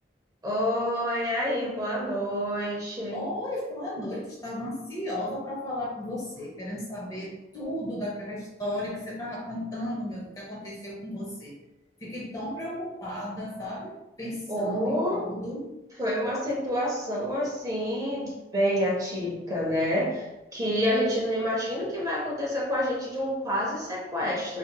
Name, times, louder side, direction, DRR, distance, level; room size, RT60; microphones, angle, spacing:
voice 1, 0.4-3.2 14.5-15.2 16.0-24.6, equal, 20° right, -4 dB, 0.7 m, -28 dB
voice 2, 3.1-11.5 12.0-15.7, left 1 dB, 20° left, -5 dB, 0.6 m, -34 dB
3.3 x 2.8 x 2.2 m, 0.98 s
head